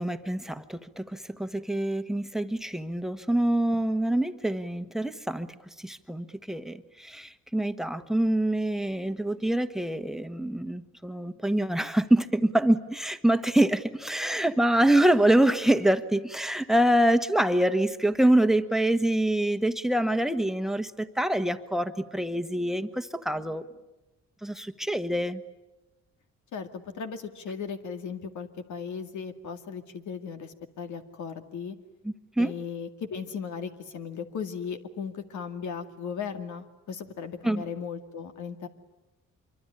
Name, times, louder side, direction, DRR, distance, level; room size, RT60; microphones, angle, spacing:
voice 1, 0.0-23.6 24.4-25.4 32.0-32.5 37.4-37.6, right 1 dB, ahead, 9 dB, 1.4 m, -25 dB
voice 2, 26.5-31.8 32.4-38.7, left 6 dB, 75° left, 7 dB, 2.2 m, -37 dB
25.0 x 24.0 x 9.9 m, 1.0 s
cardioid pair, 90°, 30 cm